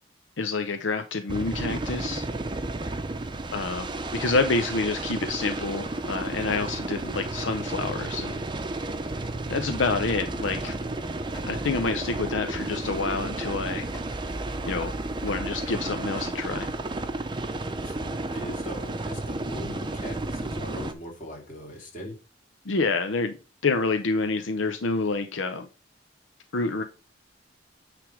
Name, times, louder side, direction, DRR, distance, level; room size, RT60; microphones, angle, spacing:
voice 1, 0.4-2.3 3.5-3.9 4.1-8.4 9.5-10.7 11.5-13.9 14.6-16.7 22.7-23.3 23.6-25.7 26.5-26.8, left 3 dB, 85° left, 0.7 m, -28 dB
sound 1, 1.3-20.9, right 2 dB, 25° right, 0.6 m, -32 dB
sound 2, 9.1-16.7, equal, 20° left, 2.9 m, -48 dB
voice 2, 17.8-22.1, left 1 dB, 45° left, 2.6 m, -40 dB
9.3 x 3.4 x 4.9 m
head